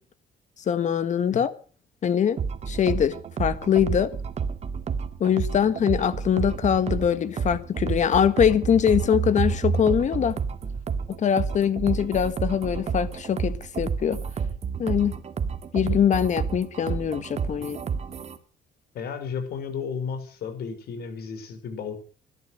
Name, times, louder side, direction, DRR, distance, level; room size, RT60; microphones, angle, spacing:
voice 1, 0.7-1.5 2.0-2.4 2.7-4.1 5.2-10.4 11.2-14.2 14.8-15.1 15.7-17.8, left 8 dB, 45° left, 1.7 m, -23 dB
sound 1, 2.4-18.4, right 6 dB, 40° right, 1.9 m, -30 dB
voice 2, 18.9-22.0, left 6 dB, 65° left, 5.3 m, -33 dB
18.0 x 12.0 x 6.5 m
cardioid pair, 110°, 17 cm